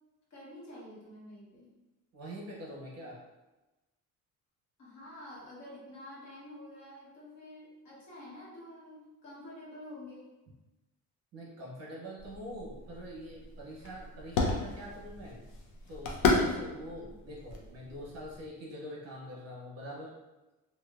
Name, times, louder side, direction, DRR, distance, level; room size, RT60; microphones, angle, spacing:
voice 1, 0.3-1.7 4.8-10.3, left 1 dB, 55° left, -6 dB, 1.0 m, -48 dB
voice 2, 2.1-3.2 11.3-15.4 15.9-20.1, equal, 45° right, -4 dB, 0.8 m, -44 dB
sound 1, 12.2-18.5, left 4 dB, 75° left, 0.6 m, -34 dB
2.8 x 2.2 x 2.3 m, 1.1 s
cardioid pair, 170°, 33 cm